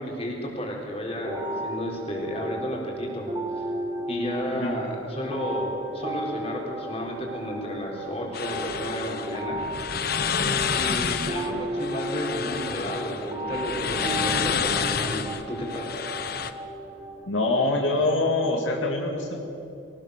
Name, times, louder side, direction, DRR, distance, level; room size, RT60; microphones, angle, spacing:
voice 1, 0.0-3.3 3.6-3.7 4.1-9.6 10.7-15.9, equal, 30° left, -1 dB, 4.6 m, -32 dB
sound 1, 1.2-17.2, right 1 dB, 25° right, 4.0 m, -35 dB
sound 2, 8.3-16.5, left 6 dB, 50° left, 0.9 m, -29 dB
voice 2, 17.3-19.4, left 2 dB, 80° left, 1 dB, 2.3 m, -25 dB
23.0 x 19.0 x 6.7 m, 2.7 s
head